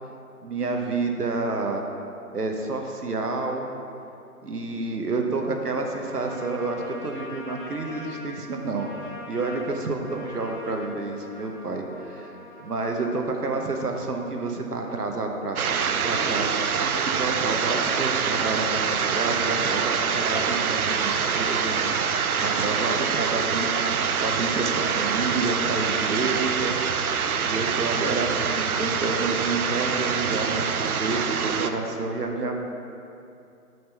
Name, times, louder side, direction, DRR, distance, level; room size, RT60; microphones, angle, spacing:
voice 1, 0.4-1.9 2.3-3.7 4.4-12.3 12.6-26.8 27.4-32.6, right 3 dB, 90° right, 3 dB, 1.0 m, -29 dB
Trumpet, 6.0-14.6, left 2 dB, 35° left, 0.7 m, -43 dB
sound 1, 15.6-31.7, right 6 dB, 75° right, 0.5 m, -25 dB
6.3 x 4.5 x 5.5 m, 2.6 s
figure-of-eight pair, 150°, 45 cm